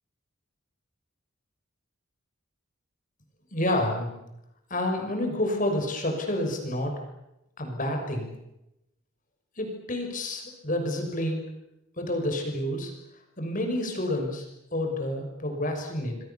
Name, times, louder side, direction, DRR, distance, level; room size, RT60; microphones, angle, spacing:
voice 1, 3.5-4.1 4.7-6.9 7.6-8.3 9.6-11.5 12.0-12.9 13.4-14.5 14.7-16.2, left 1 dB, 40° left, 3 dB, 6.2 m, -29 dB
28.5 x 22.5 x 7.2 m, 0.87 s
head